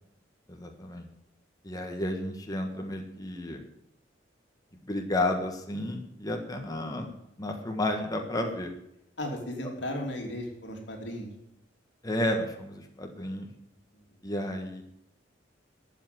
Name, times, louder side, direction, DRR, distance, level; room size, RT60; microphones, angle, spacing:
voice 1, 0.5-1.1 1.6-3.6 4.8-8.7 12.0-13.5 14.2-14.8, left 1 dB, 20° left, 3 dB, 1.5 m, -32 dB
voice 2, 9.2-11.3 13.9-14.0, left 1 dB, 65° left, 1 dB, 3.2 m, -35 dB
12.5 x 7.5 x 9.3 m, 0.79 s
head